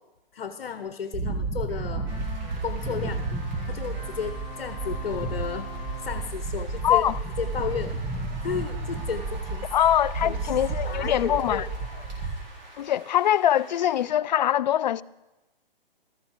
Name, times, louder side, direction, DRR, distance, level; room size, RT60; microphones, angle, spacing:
voice 1, 0.3-2.1 2.6-3.2 3.7-5.7 6.0-7.1 7.4-8.0 8.4-9.7 10.2-10.5 10.8-11.7 12.1-12.4, left 7 dB, 65° left, 1.1 m, -33 dB
sound 1, 1.1-12.4, right 3 dB, 20° right, 1.5 m, -32 dB
sound 2, 1.7-7.8, equal, 70° right, 6.0 m, -43 dB
sound 3, 2.1-14.0, right 1 dB, 45° right, 3.9 m, -47 dB
voice 2, 6.8-7.2 9.7-11.7 12.8-15.0, left 11 dB, 50° left, 0.4 m, -23 dB
14.0 x 14.0 x 4.6 m
hypercardioid pair, 135°, 29 cm